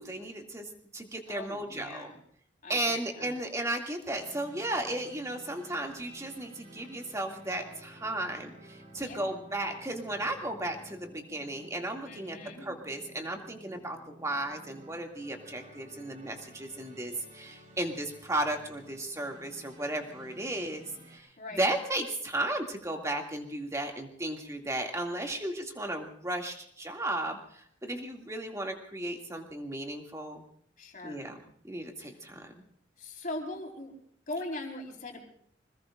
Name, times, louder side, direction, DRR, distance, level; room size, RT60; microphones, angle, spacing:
voice 1, 0.0-2.1 2.7-12.4 12.6-30.4 31.0-31.4 31.6-32.6, right 1 dB, 15° right, 2 dB, 2.4 m, -35 dB
voice 2, 1.3-2.2 2.6-3.3 9.0-9.3 12.1-12.6 21.4-21.6 30.8-31.2 32.0-32.2 33.0-33.9 34.3-35.2, left 2 dB, 45° left, 1 dB, 4.5 m, -40 dB
sound 1, 4.1-21.2, right 1 dB, 45° right, 5.3 m, -53 dB
26.0 x 20.5 x 2.6 m, 0.63 s
head